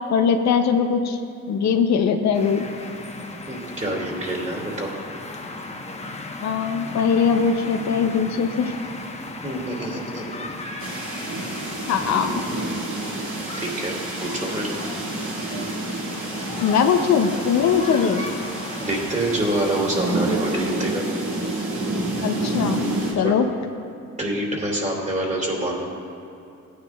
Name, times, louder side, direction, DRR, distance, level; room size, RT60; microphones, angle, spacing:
voice 1, 0.1-1.2 1.5-2.6 6.4-8.7 11.9-12.3 16.6-18.3 22.2-22.8 23.1-23.5, left 6 dB, 65° left, 6 dB, 0.7 m, -20 dB
sound 1, 2.3-20.3, left 2 dB, 20° left, 1.0 m, -36 dB
voice 2, 3.5-4.9 9.4-10.3 12.0-12.4 13.6-14.7 17.6-17.8 18.8-21.1 23.2-23.3 24.2-25.8, right 1 dB, 25° right, -2 dB, 2.4 m, -27 dB
sound 2, 10.8-23.1, right 2 dB, 65° right, 2.6 m, -29 dB
16.0 x 9.5 x 2.4 m, 2.6 s
cardioid pair, 90°, 30 cm